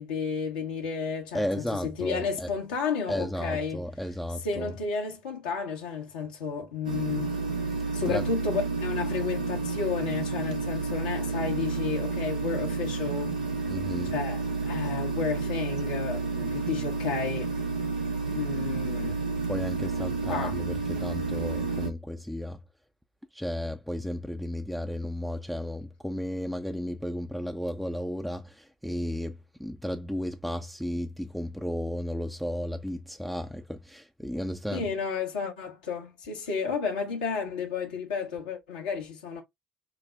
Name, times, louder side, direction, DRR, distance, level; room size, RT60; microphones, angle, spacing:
voice 1, 0.0-3.8 4.4-7.3 7.9-13.4 14.0-17.5 18.3-19.2 20.3-20.6 34.7-39.4, left 5 dB, 80° left, 0.9 m, -32 dB
voice 2, 1.3-2.5 3.1-4.7 8.1-8.3 13.7-14.1 19.5-22.6 23.3-34.9, equal, ahead, 0.4 m, -33 dB
sound 1, 6.8-21.9, right 4 dB, 90° right, 0.6 m, -30 dB
5.0 x 2.0 x 2.4 m
hypercardioid pair, 60°, 4 cm